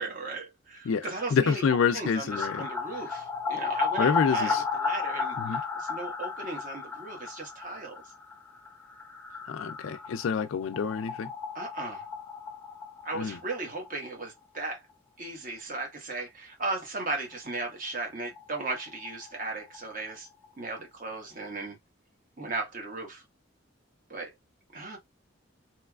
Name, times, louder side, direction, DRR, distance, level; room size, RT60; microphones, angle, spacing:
voice 1, 0.0-1.6 1.9-5.4 5.8-8.0 11.5-12.0 13.0-14.8 15.2-20.3 20.6-21.8 22.4-23.2 24.1-24.3 24.7-25.0, right 3 dB, 45° right, 1.2 m, -36 dB
voice 2, 0.8-2.7 2.9-3.2 3.7-4.6 5.4-5.6 9.5-11.3 13.1-13.4, left 6 dB, 85° left, 0.4 m, -28 dB
sound 1, 2.3-13.9 14.2-14.3 14.5-14.6 17.7-17.8 18.0-18.1 18.4-20.1 20.4-20.5, left 5 dB, 10° left, 0.6 m, -34 dB
3.2 x 3.0 x 2.3 m
head